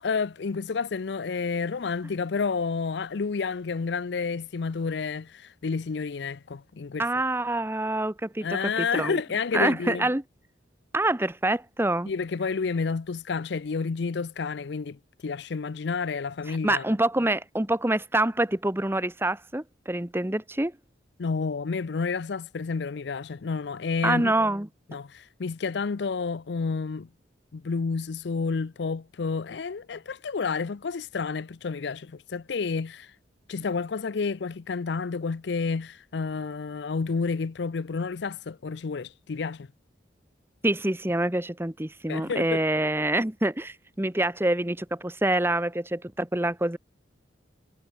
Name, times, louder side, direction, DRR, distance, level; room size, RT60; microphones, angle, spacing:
voice 1, 0.0-7.1 8.4-10.1 12.1-16.9 21.2-24.3 24.9-27.1 27.5-33.1 33.5-39.7 42.1-42.6, left 4 dB, 65° left, 0.5 m, -30 dB
voice 2, 7.0-8.5 8.8-9.2 9.5-10.2 10.9-12.1 16.6-20.7 24.0-24.7 40.6-46.8, right 1 dB, 10° right, 1.0 m, -26 dB
head